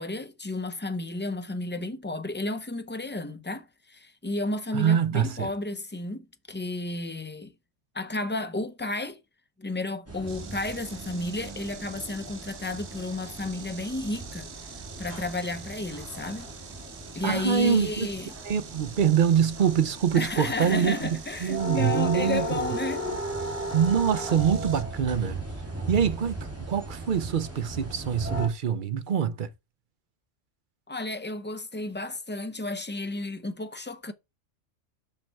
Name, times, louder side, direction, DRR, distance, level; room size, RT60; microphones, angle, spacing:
voice 1, 0.0-7.5 7.9-9.2 9.6-14.5 15.0-16.5 17.1-18.3 20.1-23.1 30.9-34.1, left 2 dB, 10° left, 0.5 m, -32 dB
voice 2, 4.7-5.5 17.2-18.1 18.4-22.5 23.7-25.4 25.9-29.5, right 8 dB, 50° right, 0.7 m, -25 dB
sound 1, 10.1-28.5, right 1 dB, 10° right, 2.5 m, -36 dB
Insect, 10.3-24.8, right 7 dB, 70° right, 1.2 m, -47 dB
5.9 x 5.4 x 4.4 m
omnidirectional pair, 1.2 m